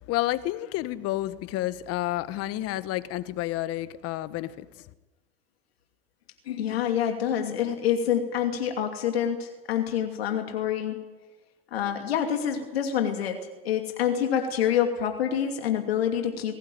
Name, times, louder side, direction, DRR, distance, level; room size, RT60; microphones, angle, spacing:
voice 1, 0.0-4.9, left 15 dB, 50° left, 1.4 m, -30 dB
voice 2, 6.5-11.0 11.7-16.5, left 9 dB, 85° left, 2.6 m, -27 dB
20.5 x 18.0 x 9.5 m
hypercardioid pair, 90°, 30 cm